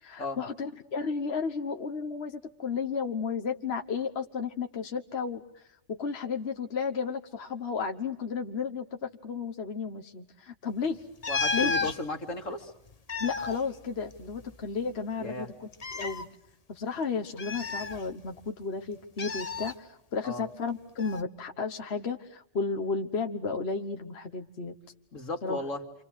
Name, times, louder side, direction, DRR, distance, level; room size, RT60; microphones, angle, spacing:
voice 1, 0.0-5.6 5.9-11.0 11.5-11.9 13.2-15.7 15.9-16.3 16.7-24.7 25.4-25.6, left 5 dB, 55° left, 5 dB, 1.6 m, -33 dB
sound 1, 11.2-12.0 12.9-14.6 14.8-14.9 15.7-16.2 17.4-18.4 19.2-19.7 21.0-21.2, left 4 dB, 30° left, 1.2 m, -32 dB
voice 2, 11.3-12.7 15.2-15.5 20.2-20.4 25.1-25.8, left 2 dB, 80° left, 5 dB, 2.8 m, -35 dB
29.0 x 27.0 x 6.4 m, 0.75 s
omnidirectional pair, 1.3 m